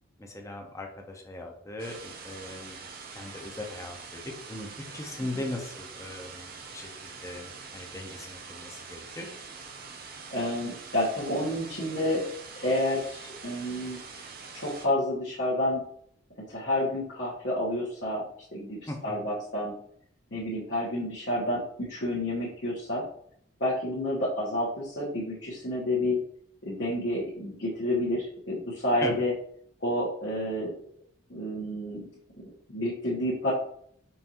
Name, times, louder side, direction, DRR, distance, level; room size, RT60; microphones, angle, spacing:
voice 1, 0.2-2.8 3.1-4.2 4.5-9.3 18.9-19.3 29.0-29.2, left 1 dB, 15° left, 2 dB, 0.6 m, -39 dB
sound 1, 1.8-14.9, right 5 dB, 50° right, 0.6 m, -44 dB
voice 2, 10.3-12.2 12.6-14.0 14.5-15.8 16.5-18.2 18.5-19.7 20.3-23.0 23.6-26.2 26.6-29.3 29.8-30.7 31.3-32.0 32.7-33.5, left 1 dB, 70° left, -9 dB, 1.2 m, -29 dB
5.3 x 2.6 x 2.9 m, 0.65 s
head